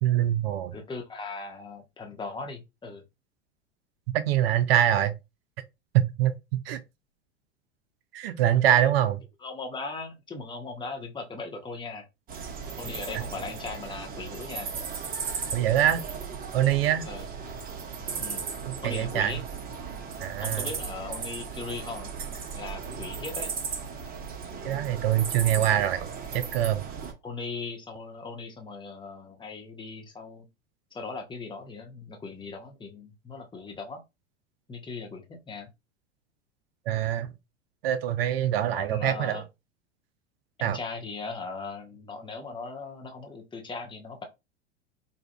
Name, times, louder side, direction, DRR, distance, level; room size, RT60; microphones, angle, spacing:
voice 1, 0.0-0.7 4.1-5.1 5.9-6.4 6.7-6.8 8.1-9.2 13.1-13.2 15.5-16.0 16.5-17.1 18.7-19.4 20.2-20.7 24.6-26.9 36.9-37.3 37.8-39.4 40.6-40.8, right 11 dB, 55° right, 0.6 m, -24 dB
voice 2, 0.7-3.0 8.7-8.9 9.4-12.1 12.8-14.7 17.1-17.3 18.2-18.5 18.8-19.4 20.4-22.1 22.5-23.5 27.2-30.5 30.9-34.0 34.7-35.7 38.7-39.4 40.6-44.2, left 4 dB, 15° left, 1.0 m, -38 dB
sound 1, 12.3-27.1, right 5 dB, 25° right, 0.9 m, -36 dB
4.7 x 2.7 x 2.2 m
figure-of-eight pair, 85°, 36 cm